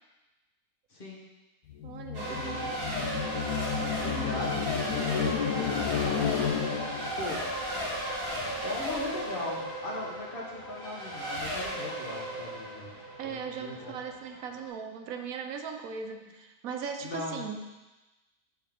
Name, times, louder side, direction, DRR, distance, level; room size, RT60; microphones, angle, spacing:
voice 1, 0.9-1.2 2.3-2.7 4.0-6.1 7.2-7.4 8.6-14.0 17.0-17.4, left 2 dB, 40° left, -3 dB, 1.4 m, -39 dB
sound 1, 1.7-7.2, left 8 dB, 90° left, 1.2 m, -32 dB
voice 2, 1.8-2.4 13.2-17.8, right 6 dB, 70° right, 5 dB, 1.1 m, -38 dB
Race car auto racing / Accelerating revving vroom / Mechanisms, 2.1-14.7, equal, 15° right, 1.2 m, -35 dB
7.5 x 5.6 x 3.6 m, 1.1 s
omnidirectional pair, 1.6 m